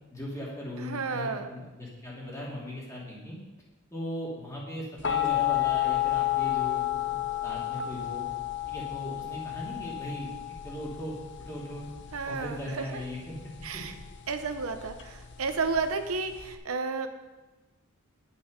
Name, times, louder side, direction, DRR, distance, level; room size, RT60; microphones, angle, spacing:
voice 1, 0.1-3.4 3.9-8.3 8.7-10.3 10.6-11.2 11.5-11.9 12.3-13.4 13.7-13.8, equal, 15° left, -5 dB, 2.7 m, -38 dB
voice 2, 0.8-1.5 12.1-12.9 13.6-13.9 14.3-17.1, right 4 dB, 90° right, 8 dB, 0.8 m, -32 dB
sound 1, 5.0-16.5, left 13 dB, 55° left, 0.8 m, -31 dB
10.0 x 8.5 x 5.1 m, 1.2 s
head